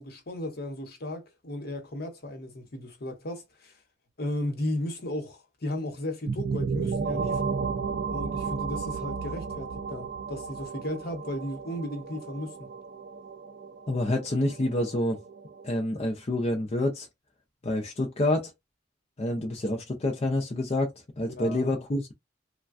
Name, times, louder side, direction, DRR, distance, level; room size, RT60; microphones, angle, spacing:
voice 1, 0.0-3.7 4.2-7.6 8.1-12.7 21.3-21.8, left 1 dB, 55° left, 0.9 m, -35 dB
sound 1, 6.3-15.8, right 5 dB, 50° right, 0.3 m, -34 dB
voice 2, 13.9-15.2 15.6-17.1 17.6-18.5 19.2-22.1, left 1 dB, 35° left, 0.5 m, -28 dB
3.2 x 2.2 x 2.5 m
head